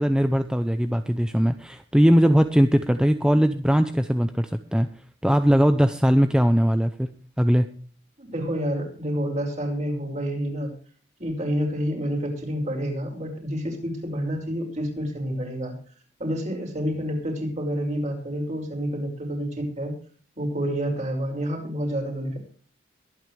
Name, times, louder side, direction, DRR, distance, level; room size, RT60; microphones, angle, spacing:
voice 1, 0.0-4.9 5.2-7.1 7.4-7.7, equal, 5° right, 9 dB, 0.6 m, -20 dB
voice 2, 8.2-10.7 11.2-15.7 16.2-19.9 20.4-22.4, equal, 40° right, 2 dB, 5.8 m, -28 dB
23.0 x 9.5 x 3.3 m, 0.43 s
head